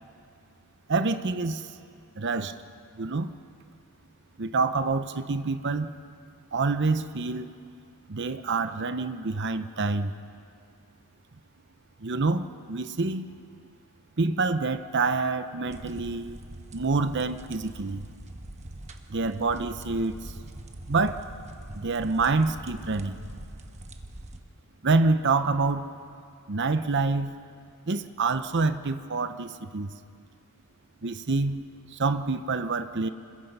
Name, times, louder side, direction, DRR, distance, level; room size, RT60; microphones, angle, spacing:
voice 1, 0.9-1.6 2.2-2.5 2.9-3.3 4.4-5.9 6.5-7.5 8.1-10.1 12.0-13.3 14.2-16.4 16.7-18.1 19.1-20.1 20.9-21.2 21.7-23.2 24.8-25.9 26.5-27.3 27.9-29.9 31.0-31.6 31.9-33.1, right 3 dB, 50° right, 10 dB, 0.8 m, -27 dB
sound 1, 15.7-24.4, right 1 dB, 30° right, 1.2 m, -43 dB
27.0 x 21.5 x 5.5 m, 2.3 s
head